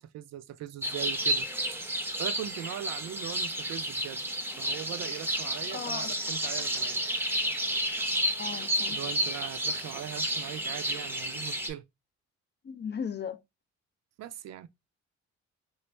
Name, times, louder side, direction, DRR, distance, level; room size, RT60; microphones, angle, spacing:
voice 1, 0.0-1.5 1.8-4.2 4.6-7.0 8.9-11.8 14.2-14.7, right 11 dB, 60° right, 0.4 m, -40 dB
sound 1, 0.8-11.7, right 1 dB, 5° right, 0.6 m, -31 dB
voice 2, 5.7-6.1 8.4-9.0 12.6-13.4, left 7 dB, 35° left, 0.5 m, -36 dB
3.1 x 2.5 x 3.2 m
cardioid pair, 90°, 30 cm